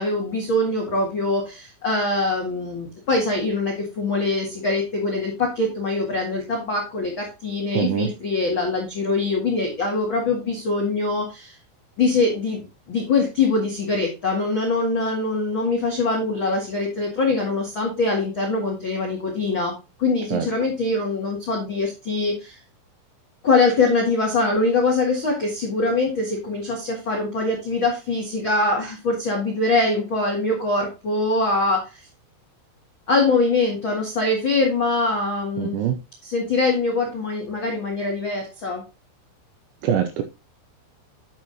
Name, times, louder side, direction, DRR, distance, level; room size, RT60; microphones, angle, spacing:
voice 1, 0.0-11.6 12.0-22.6 23.4-32.0 33.1-35.8 36.2-38.8, left 3 dB, 70° left, 0 dB, 1.1 m, -23 dB
voice 2, 7.7-8.1 20.3-20.5 35.6-36.0 39.8-40.2, right 9 dB, 85° right, 7 dB, 2.7 m, -23 dB
9.4 x 7.6 x 2.9 m, 0.26 s
omnidirectional pair, 6.0 m